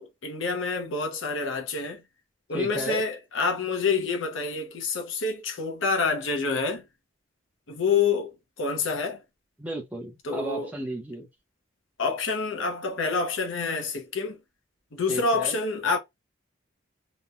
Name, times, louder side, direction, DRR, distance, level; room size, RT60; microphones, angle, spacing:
voice 1, 0.0-2.0 2.5-6.8 7.7-8.3 8.6-9.2 10.2-10.7 12.0-14.4 14.9-16.0, left 4 dB, 70° left, 0.7 m, -27 dB
voice 2, 2.5-3.0 9.6-11.3 15.1-15.6, right 2 dB, 5° right, 0.7 m, -34 dB
3.0 x 2.1 x 2.4 m
head